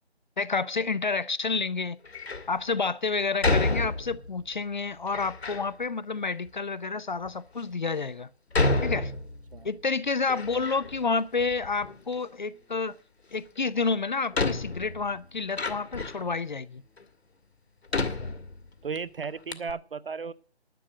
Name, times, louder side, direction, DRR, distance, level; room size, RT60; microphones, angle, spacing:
voice 1, 0.4-2.0 2.5-8.3 8.8-9.1 9.6-13.0 13.3-16.8, left 4 dB, 45° left, 0.6 m, -29 dB
Door, 2.0-2.5 3.4-4.4 5.1-5.7 6.5-6.6 7.2-7.3 8.5-9.7 10.0-11.1 11.4-12.2 13.5-13.6 14.3-16.3 17.0-17.1 17.9-19.0 19.2-19.3 19.5-19.7, left 3 dB, 70° left, 1.9 m, -29 dB
voice 2, 18.8-20.3, right 5 dB, 55° right, 0.6 m, -35 dB
11.5 x 6.4 x 8.8 m
figure-of-eight pair, 160°, 32 cm